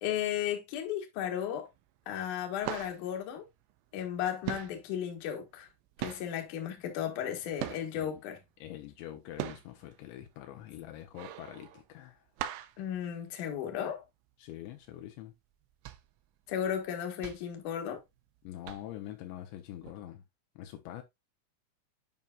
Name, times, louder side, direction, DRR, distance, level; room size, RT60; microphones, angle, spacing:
voice 1, 0.0-1.7 2.1-3.4 3.9-5.7 6.0-8.4 12.8-14.0 16.5-18.0, left 10 dB, 60° left, 2.3 m, -34 dB
sound 1, 1.5-2.0 2.2-4.2 4.4-8.2 8.6-13.9 14.3-14.4 14.7-15.0 15.5-18.3 18.6-19.1 19.8-19.9, right 13 dB, 90° right, 3.3 m, -41 dB
voice 2, 8.6-12.2 14.4-15.3 18.4-20.2 20.6-21.0, left 12 dB, 80° left, 2.9 m, -45 dB
9.4 x 5.5 x 2.4 m
omnidirectional pair, 5.4 m